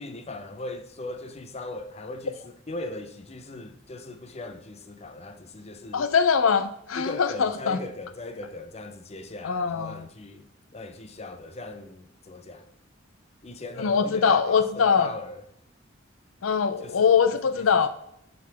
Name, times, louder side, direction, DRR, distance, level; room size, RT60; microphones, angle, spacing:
voice 1, 0.0-6.1 7.0-12.7 13.4-15.4 16.8-17.9, left 2 dB, 30° left, 0.7 m, -39 dB
voice 2, 5.9-7.8 9.4-10.0 13.8-15.1 16.4-17.9, left 6 dB, 80° left, 0.5 m, -22 dB
7.4 x 6.2 x 3.5 m
head